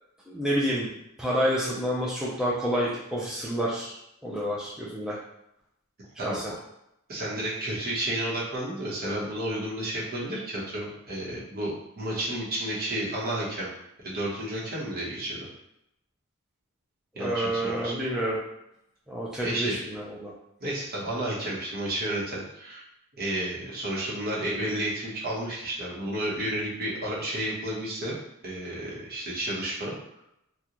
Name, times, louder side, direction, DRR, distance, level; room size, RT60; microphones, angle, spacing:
voice 1, 0.3-0.9 1.2-3.9 4.2-5.2 6.2-6.4 17.2-18.4 19.1-20.3, equal, 5° right, -7 dB, 0.5 m, -28 dB
voice 2, 6.2-6.5 7.1-13.7 14.0-15.5 17.1-18.0 19.4-19.8 20.6-22.8 23.2-28.1 28.4-29.9, right 1 dB, 45° right, -5 dB, 1.0 m, -31 dB
3.8 x 2.3 x 2.9 m, 0.80 s
head